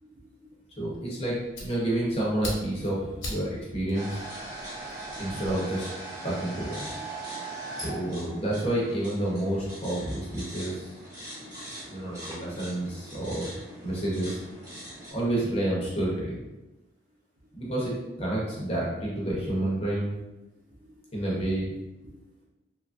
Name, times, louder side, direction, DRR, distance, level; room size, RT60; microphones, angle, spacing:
voice 1, 0.0-0.9 5.1-5.3 6.9-7.0 11.3-11.8 12.2-12.6 12.8-12.9 13.2-14.2 20.8-21.0 22.0-22.1, equal, 45° right, -5 dB, 0.7 m, -53 dB
voice 2, 0.8-4.2 5.2-5.9 6.2-6.8 7.7-11.0 11.9-13.5 13.8-14.4 15.1-16.4 17.5-20.1 21.1-21.7, right 1 dB, 30° left, -5 dB, 0.7 m, -29 dB
Fire, 0.9-5.5, left 1 dB, 90° left, 1.0 m, -42 dB
sound 1, 3.9-15.1, right 2 dB, 20° right, 1.0 m, -40 dB
3.0 x 2.4 x 2.4 m, 1.0 s
head